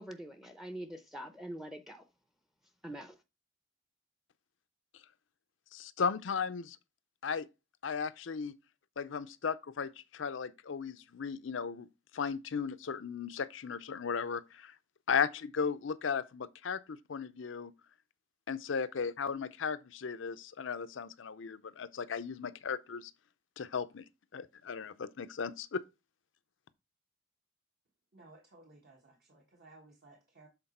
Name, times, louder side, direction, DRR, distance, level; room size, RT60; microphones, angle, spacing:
voice 1, 0.0-2.0 2.8-3.1, right 1 dB, ahead, 0.6 m, -44 dB
voice 2, 5.7-6.8 7.2-7.5 7.8-8.5 9.0-11.9 12.1-14.7 15.1-17.7 18.5-23.1 23.6-24.1 24.3-25.8, left 6 dB, 70° left, 0.5 m, -36 dB
voice 3, 28.1-30.5, right 2 dB, 50° right, 1.2 m, -58 dB
7.9 x 3.9 x 4.2 m
head